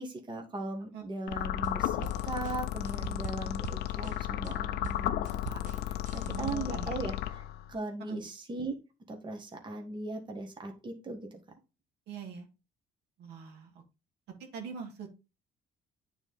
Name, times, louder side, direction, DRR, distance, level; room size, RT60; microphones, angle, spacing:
voice 1, 0.0-2.0 2.2-5.6 5.9-7.4 7.7-8.8 9.1-11.4, right 2 dB, 25° right, 4 dB, 1.6 m, -38 dB
sound 1, 1.3-7.8, left 13 dB, 75° left, 0.5 m, -34 dB
sound 2, 1.5-4.5 4.8-6.8, right 7 dB, 50° right, 1.1 m, -43 dB
voice 2, 6.2-6.9 8.1-8.2 12.1-12.5 13.2-13.7 14.4-15.1, right 7 dB, 80° right, 3 dB, 2.0 m, -42 dB
9.0 x 4.1 x 3.7 m, 0.29 s
cardioid pair, 110°, 17 cm